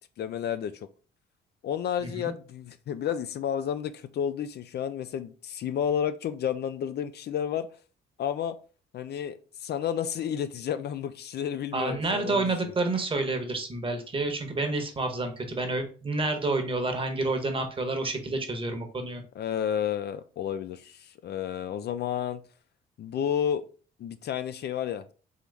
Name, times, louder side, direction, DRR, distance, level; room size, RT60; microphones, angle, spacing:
voice 1, 0.2-0.9 1.6-7.7 8.2-8.6 8.9-12.5 19.4-22.4 23.0-23.6 24.0-25.1, left 9 dB, 55° left, 0.4 m, -31 dB
voice 2, 2.0-2.3 11.7-19.2, right 2 dB, 25° right, 1.0 m, -29 dB
3.8 x 3.0 x 3.3 m
cardioid pair, 90°, 20 cm